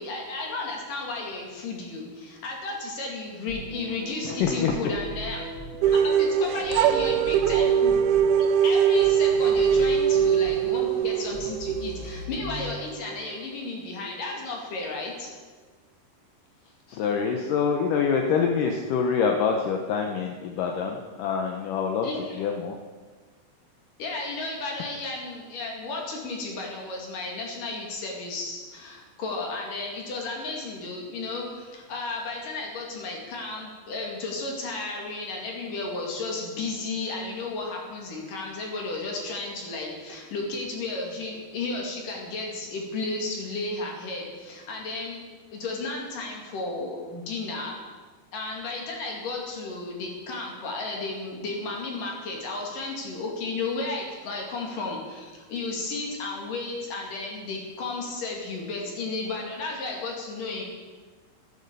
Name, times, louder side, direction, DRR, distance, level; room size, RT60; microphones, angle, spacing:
voice 1, 0.0-5.5 5.8-8.0 8.3-15.4 22.0-22.5 24.0-45.2 45.5-47.8 48.3-60.6, left 3 dB, 55° left, 0 dB, 3.6 m, -33 dB
sound 1, 3.5-13.6, right 1 dB, 20° right, 3.5 m, -40 dB
voice 2, 4.2-4.8 16.9-22.1 22.3-22.8, left 6 dB, 75° left, 3 dB, 1.9 m, -25 dB
sound 2, 5.8-12.7, right 8 dB, 80° right, 2.4 m, -22 dB
12.5 x 12.0 x 6.8 m, 1.4 s
omnidirectional pair, 5.0 m